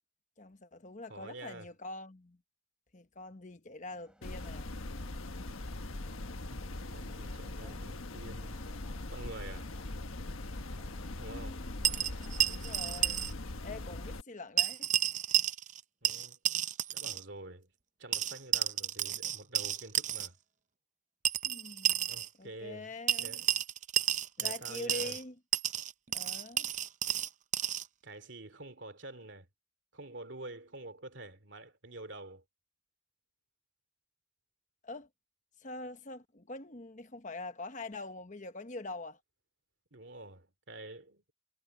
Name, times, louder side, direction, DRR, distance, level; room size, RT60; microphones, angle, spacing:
voice 1, 0.4-2.4 2.9-4.7 11.3-11.9 12.5-13.2 13.6-14.9 21.4-22.1 22.4-23.4 24.4-25.3 26.1-26.7 34.8-35.1 35.6-39.2, left 2 dB, 40° left, 1.1 m, -44 dB
voice 2, 1.1-1.7 6.5-8.6 9.1-9.8 11.2-11.6 16.0-16.6 16.9-17.7 18.0-20.3 22.1-23.5 24.4-25.2 28.0-29.5 29.9-32.4 39.9-41.3, right 2 dB, 60° right, 2.8 m, -48 dB
sound 1, 3.9-12.6, equal, 5° right, 5.0 m, -64 dB
sound 2, 4.2-14.2, left 2 dB, 90° left, 1.3 m, -41 dB
sound 3, 11.8-13.3 13.6-13.7 14.6-15.8 16.0-17.2 18.1-20.3 21.2-22.3 23.1-25.2 25.5-27.9, right 11 dB, 40° right, 0.6 m, -31 dB
head